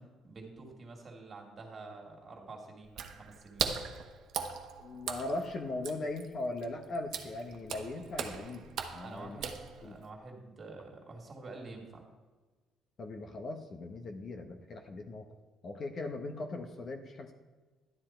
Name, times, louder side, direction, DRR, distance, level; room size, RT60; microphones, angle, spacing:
voice 1, 0.0-3.7 9.0-12.0, right 3 dB, 30° right, 1 dB, 2.4 m, -48 dB
Water / Splash splatter, 2.9-10.1, right 7 dB, 55° right, 1.1 m, -40 dB
voice 2, 4.8-9.4 9.8-10.0 13.0-15.3 15.6-17.3, left 2 dB, 35° left, 5 dB, 1.0 m, -39 dB
12.0 x 9.9 x 4.5 m, 1.3 s
cardioid pair, 150°, 0 cm